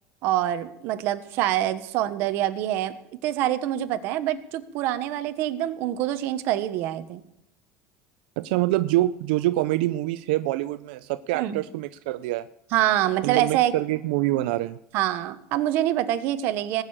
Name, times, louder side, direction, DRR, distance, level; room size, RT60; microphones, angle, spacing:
voice 1, 0.2-2.9 3.2-7.2 11.3-11.6 12.7-13.7 14.9-16.8, right 13 dB, 45° right, 10 dB, 1.1 m, -25 dB
voice 2, 8.4-12.5 13.2-14.8, right 16 dB, 85° right, 13 dB, 0.5 m, -25 dB
19.0 x 6.6 x 8.9 m, 0.80 s
cardioid pair, 180°, 5 cm